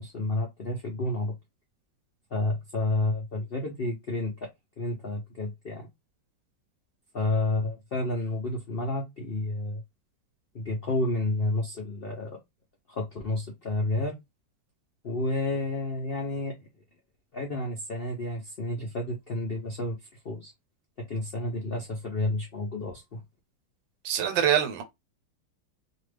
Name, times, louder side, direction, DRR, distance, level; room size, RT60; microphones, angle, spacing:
voice 1, 0.0-1.3 2.3-4.3 4.8-5.9 7.1-9.8 10.5-12.4 12.9-14.2 15.0-16.7 17.3-20.0 20.2-20.5 21.1-23.2, left 2 dB, 65° left, 0.5 m, -30 dB
voice 2, 24.0-24.8, right 9 dB, 85° right, 1.4 m, -24 dB
2.8 x 2.4 x 3.3 m
omnidirectional pair, 2.0 m